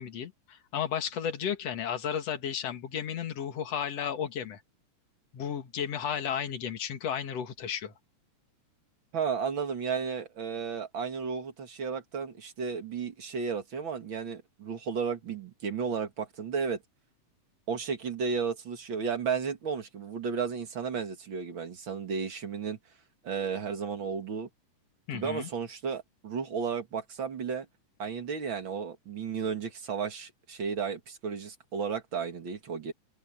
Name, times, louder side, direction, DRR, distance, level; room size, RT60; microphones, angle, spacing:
voice 1, 0.0-4.6 5.3-7.9 25.1-25.5, left 8 dB, 55° left, 2.8 m, -33 dB
voice 2, 9.1-16.8 17.7-22.8 23.2-24.5 25.1-27.7 28.0-32.9, right 6 dB, 45° right, 2.4 m, -33 dB
omnidirectional pair, 3.6 m